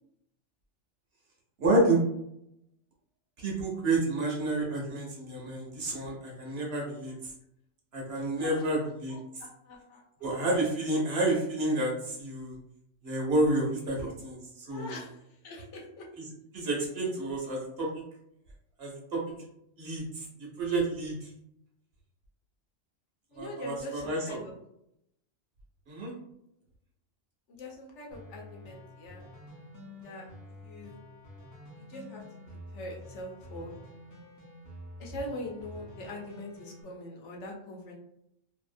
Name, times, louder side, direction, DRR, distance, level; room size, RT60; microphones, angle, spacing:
voice 1, 1.6-2.0 3.4-7.3 7.9-9.2 10.2-12.6 13.0-15.0 16.2-17.9 18.8-19.4 19.8-21.3 23.3-24.4 25.9-26.1, right 2 dB, 60° right, -2 dB, 0.9 m, -30 dB
voice 2, 8.2-8.6 9.1-10.3 14.6-16.1 23.3-24.5 27.5-29.2 29.9-31.0 31.8-32.2 32.7-33.7 35.0-38.0, left 1 dB, 70° left, -1 dB, 0.9 m, -43 dB
sound 1, 28.1-36.8, left 1 dB, 25° left, 0.4 m, -48 dB
2.7 x 2.3 x 2.5 m, 0.78 s
omnidirectional pair, 1.3 m